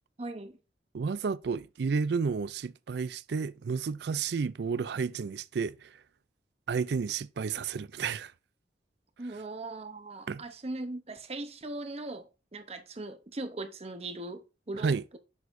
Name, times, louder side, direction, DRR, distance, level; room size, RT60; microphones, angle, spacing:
voice 1, 0.2-0.6 9.2-15.2, right 2 dB, 35° right, 0.9 m, -39 dB
voice 2, 0.9-5.9 6.7-8.3 10.3-10.4 14.8-15.0, right 5 dB, 60° right, 0.4 m, -31 dB
7.1 x 6.2 x 2.6 m
head